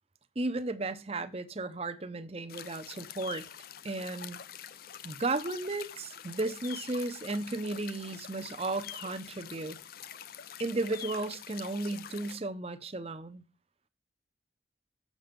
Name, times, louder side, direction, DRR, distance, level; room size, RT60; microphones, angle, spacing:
voice 1, 0.4-3.5 3.8-4.4 5.0-9.8 10.6-13.4, right 2 dB, 30° right, 0.7 m, -34 dB
sound 1, 2.5-12.4, left 10 dB, 50° left, 0.4 m, -46 dB
7.5 x 6.4 x 5.1 m
head